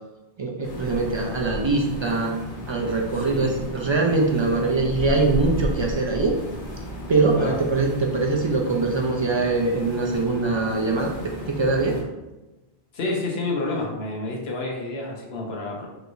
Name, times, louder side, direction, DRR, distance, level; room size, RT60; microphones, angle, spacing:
voice 1, 0.4-2.4 2.7-6.3 7.1-11.1 11.5-12.0, right 3 dB, 50° right, 0 dB, 0.3 m, -23 dB
sound 1, 0.6-12.0, left 1 dB, 55° left, 1.1 m, -34 dB
voice 2, 3.1-3.5 7.4-7.6 12.9-15.9, left 2 dB, 75° left, -1 dB, 1.1 m, -29 dB
4.8 x 3.1 x 2.6 m, 1.0 s
omnidirectional pair, 1.1 m